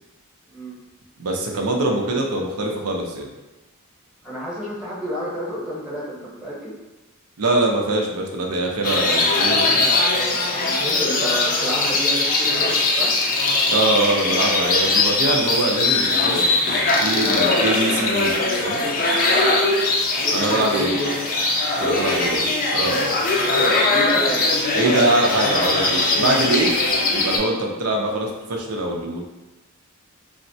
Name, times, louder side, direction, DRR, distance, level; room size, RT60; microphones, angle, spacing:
voice 1, 1.2-3.3 7.4-9.9 13.7-16.4 17.0-18.3 18.6-18.8 20.3-20.9 21.8-22.5 22.7-23.2 24.7-26.7 27.1-29.2, right 2 dB, 80° right, 1 dB, 0.5 m, -23 dB
voice 2, 4.2-6.7 10.5-13.1 20.2-21.1 21.7-22.0 23.6-24.6, equal, 5° right, -8 dB, 0.9 m, -29 dB
sound 1, 8.8-27.4, left 2 dB, 40° left, 0.4 m, -20 dB
3.4 x 2.1 x 2.7 m, 1.0 s
head